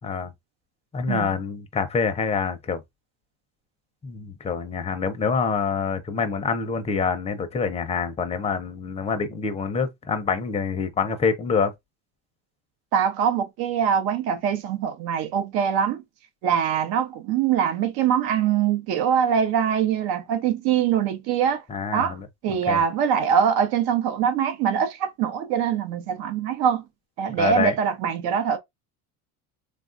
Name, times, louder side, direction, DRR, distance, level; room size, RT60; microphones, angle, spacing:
voice 1, 0.9-2.8 4.0-11.7 21.7-22.3 22.7-22.8 27.4-27.7, left 5 dB, 15° left, 0.5 m, -26 dB
voice 2, 12.9-16.0 16.4-21.6 21.9-22.2 22.4-26.8 27.2-28.6, right 8 dB, 75° right, 0.8 m, -23 dB
3.3 x 2.3 x 2.5 m
cardioid pair, 120°, 38 cm